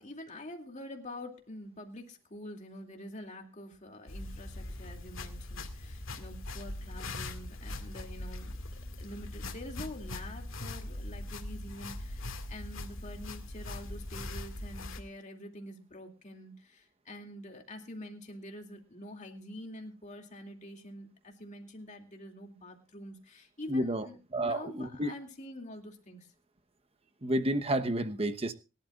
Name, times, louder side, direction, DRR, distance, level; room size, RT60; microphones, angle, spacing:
voice 1, 0.0-26.3, left 1 dB, 35° left, 3 dB, 2.5 m, -46 dB
sound 1, 4.1-15.0, left 2 dB, 75° left, 2.1 m, -41 dB
voice 2, 23.7-24.0 24.3-25.1 27.2-28.5, right 1 dB, 30° right, 9 dB, 1.0 m, -30 dB
23.0 x 12.0 x 2.4 m, 0.30 s
head